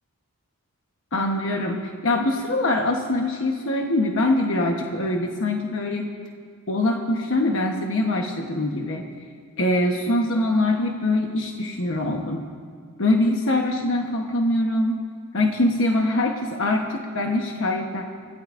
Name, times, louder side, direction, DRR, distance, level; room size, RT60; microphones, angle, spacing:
voice 1, 1.1-6.1 6.7-9.0 9.6-12.5 13.0-15.0 15.3-18.0, left 1 dB, 60° left, 1 dB, 1.1 m, -23 dB
25.0 x 17.0 x 2.6 m, 2.1 s
head